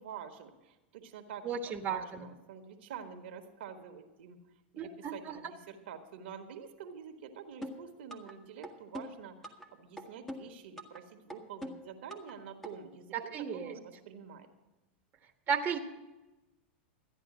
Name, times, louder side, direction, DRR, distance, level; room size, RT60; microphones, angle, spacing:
voice 1, 0.0-4.4 4.7-14.5, right 7 dB, 70° right, 6 dB, 1.6 m, -47 dB
voice 2, 1.4-2.3 4.8-5.4 13.1-13.8 15.5-15.8, right 7 dB, 30° right, 3 dB, 1.4 m, -34 dB
sound 1, 7.6-8.3 8.6-9.7 10.0-11.0 11.3-12.3 12.6-12.7, equal, 5° left, 1.5 m, -43 dB
14.0 x 10.0 x 6.2 m, 1.0 s
hypercardioid pair, 110°, 6 cm